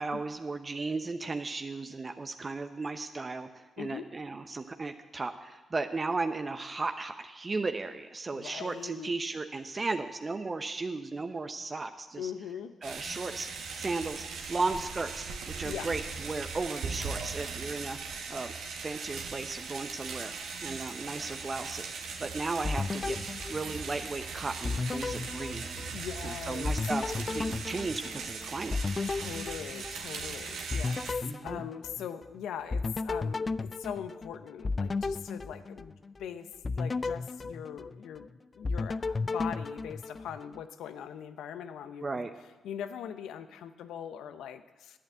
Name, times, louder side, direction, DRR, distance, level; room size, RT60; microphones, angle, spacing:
voice 1, 0.0-12.3 12.8-13.5 13.7-18.0 18.3-20.3 20.6-23.2 23.5-25.9 26.2-29.1 31.2-31.6 42.0-42.3, right 3 dB, 35° right, 7 dB, 0.8 m, -35 dB
voice 2, 8.3-9.1 12.2-12.7 15.6-15.9 25.9-26.7 29.1-31.2 31.4-42.3 42.6-45.0, left 9 dB, 75° left, 11 dB, 0.7 m, -41 dB
sound 1, 12.8-31.1, right 5 dB, 75° right, 1.4 m, -39 dB
sound 2, 22.6-24.3 24.6-26.3 26.6-30.3 30.7-32.3 32.7-36.2 36.6-38.3 38.6-40.6, left 3 dB, 40° left, 0.4 m, -34 dB
11.0 x 8.9 x 8.1 m, 1.2 s
hypercardioid pair, 45°, 0 cm